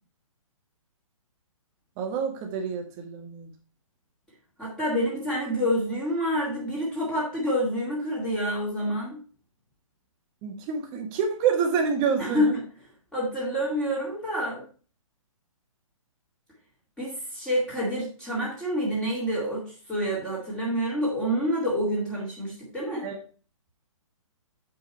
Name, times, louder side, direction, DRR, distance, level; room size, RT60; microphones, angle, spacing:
voice 1, 2.0-3.5 10.4-12.5 23.0-23.2, right 6 dB, 25° right, 3 dB, 1.6 m, -27 dB
voice 2, 4.6-9.2 12.2-12.6 13.1-14.6 17.0-23.1, equal, 5° left, -7 dB, 2.4 m, -28 dB
7.6 x 5.5 x 4.2 m, 0.38 s
hypercardioid pair, 145°, 17 cm